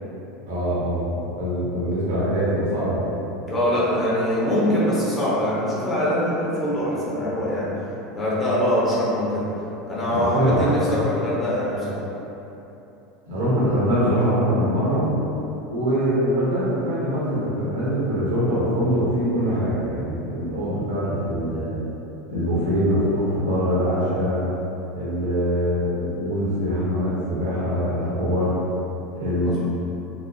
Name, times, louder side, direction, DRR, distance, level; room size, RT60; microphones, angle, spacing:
voice 1, 0.5-3.1 10.1-11.0 13.3-15.1 15.7-21.9 22.3-24.5 24.9-28.5 29.1-29.6, equal, 70° right, -8 dB, 0.7 m, -23 dB
voice 2, 3.5-7.7 8.1-9.5 9.9-12.0 29.4-29.6, equal, 20° left, -8 dB, 0.8 m, -23 dB
2.9 x 2.1 x 2.5 m, 3.0 s
figure-of-eight pair, 75°, 0 cm